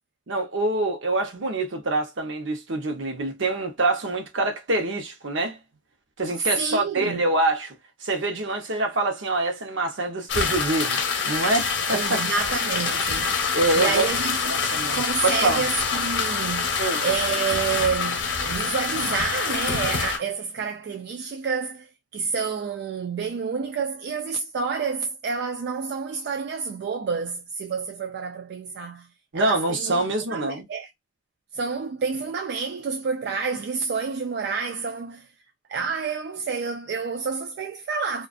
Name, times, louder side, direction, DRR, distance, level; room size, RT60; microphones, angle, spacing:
voice 1, 0.3-5.6 6.2-7.7 8.0-12.2 13.5-14.1 14.4-15.6 16.8-17.0 29.3-30.7, right 2 dB, 75° right, 0.8 m, -25 dB
voice 2, 6.4-7.2 11.9-14.4 14.8-30.0 30.3-30.9 31.5-35.3 35.7-38.3, right 5 dB, 55° right, 0.3 m, -29 dB
sound 1, 10.3-20.2, left 5 dB, 60° left, 0.7 m, -26 dB
2.4 x 2.4 x 2.4 m
head